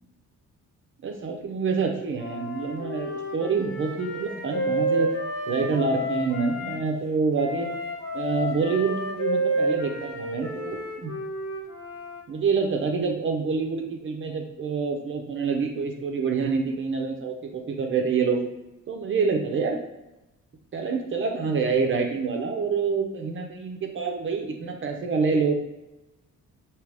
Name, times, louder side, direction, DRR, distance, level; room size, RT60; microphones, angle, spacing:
voice 1, 1.0-5.1 5.5-7.7 8.1-11.1 12.3-18.4 18.9-19.8 20.7-25.5, right 5 dB, 40° right, 2 dB, 0.5 m, -27 dB
Wind instrument woodwind instrument, 2.1-6.8 7.4-12.2, right 1 dB, 60° left, 1.3 m, -30 dB
4.8 x 2.9 x 3.3 m, 0.97 s
cardioid pair, 150°, 31 cm